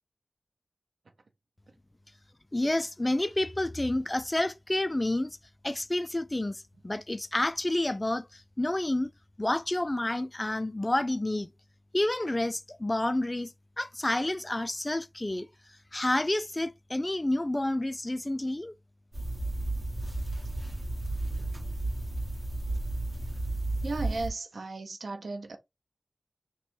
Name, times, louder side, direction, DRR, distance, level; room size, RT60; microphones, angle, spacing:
voice 1, 2.5-5.4 5.6-9.1 9.4-11.5 11.9-13.5 13.8-15.5 15.9-18.7, left 1 dB, 25° left, 0.4 m, -29 dB
sound 1, 19.1-24.3, right 2 dB, 40° right, 1.7 m, -33 dB
voice 2, 23.8-25.6, right 3 dB, 85° right, 0.6 m, -35 dB
3.0 x 3.0 x 4.4 m
wide cardioid pair, 50°, 0 cm